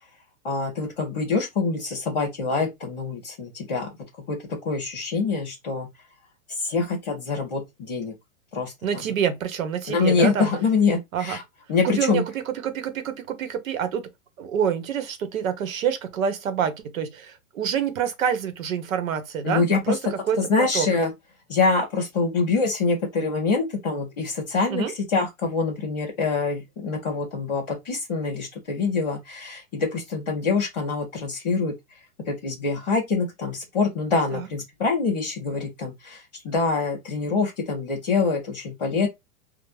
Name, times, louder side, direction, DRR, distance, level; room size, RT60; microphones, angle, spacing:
voice 1, 0.4-3.9 4.3-4.4 4.6-5.9 6.6-8.1 8.5-9.0 9.9-11.4 11.7-12.2 19.4-19.9 20.4-21.1 21.5-24.8 25.1-31.7 32.3-39.1, left 4 dB, 5° left, 0.4 m, -25 dB
voice 2, 8.8-10.5 11.1-11.4 11.8-14.1 14.4-20.0 20.2-20.9 24.7-24.9 34.3-34.5, right 8 dB, 70° right, 0.9 m, -27 dB
2.4 x 2.0 x 3.1 m
hypercardioid pair, 160°, 41 cm